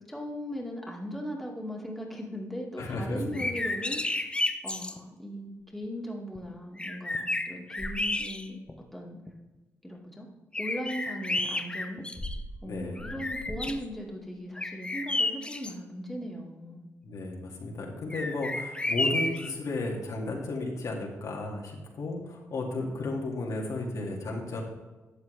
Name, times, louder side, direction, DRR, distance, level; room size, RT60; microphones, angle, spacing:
voice 1, 0.1-4.3 4.6-8.6 8.9-9.2 9.8-10.3 10.6-12.0 12.6-16.8, equal, ahead, -2 dB, 2.0 m, -38 dB
voice 2, 2.8-3.5 12.6-13.1 17.0-24.6, left 2 dB, 70° left, -1 dB, 2.1 m, -34 dB
sound 1, 3.2-5.0 6.3-6.4 6.8-8.7 9.3-9.4 10.5-12.6 13.0-13.8 14.6-15.7 18.1-19.5, left 2 dB, 15° left, 0.8 m, -31 dB
12.0 x 7.4 x 3.3 m, 1.2 s
cardioid pair, 85°, 6 cm